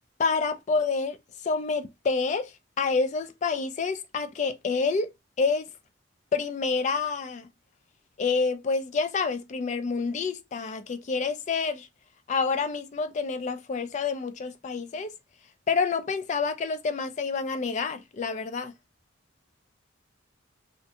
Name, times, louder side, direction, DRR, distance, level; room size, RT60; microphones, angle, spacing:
voice 1, 0.2-1.2 1.4-2.5 2.8-5.1 5.4-5.7 6.3-7.5 8.2-11.9 12.3-15.1 15.7-18.7, left 4 dB, 35° left, 0.3 m, -28 dB
2.4 x 2.1 x 2.7 m
head